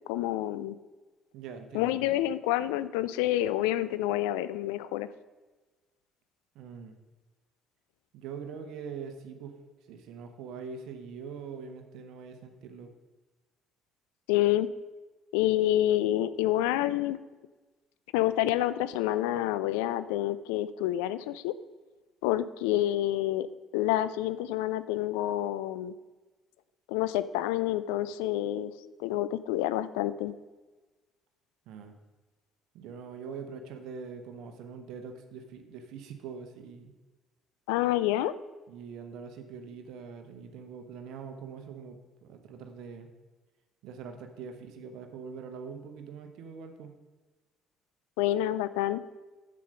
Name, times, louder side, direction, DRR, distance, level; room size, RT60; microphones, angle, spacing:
voice 1, 0.1-0.8 1.7-5.1 14.3-14.7 15.3-17.2 18.1-21.5 22.2-23.5 23.7-25.9 26.9-28.7 29.0-30.3 37.7-38.3 48.2-49.0, left 13 dB, 70° left, 15 dB, 0.3 m, -28 dB
voice 2, 1.3-2.1 6.5-7.0 8.1-9.6 9.9-12.9 31.7-32.0 32.7-36.9 38.7-43.1 43.8-46.9, right 6 dB, 60° right, 6 dB, 0.9 m, -43 dB
7.6 x 7.3 x 5.3 m, 1.2 s
figure-of-eight pair, 50°, 0 cm